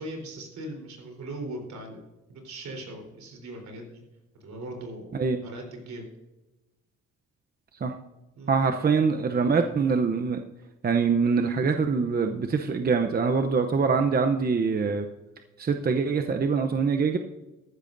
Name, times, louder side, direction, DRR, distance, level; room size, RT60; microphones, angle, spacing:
voice 1, 0.0-2.0 2.3-4.0 4.4-5.2 5.4-6.0 8.4-8.5, right 1 dB, 65° right, 2 dB, 3.9 m, -39 dB
voice 2, 8.5-10.4 10.8-15.1 15.6-17.2, right 5 dB, 30° right, 6 dB, 0.7 m, -24 dB
14.0 x 12.0 x 2.6 m, 1.0 s
cardioid pair, 90°, 30 cm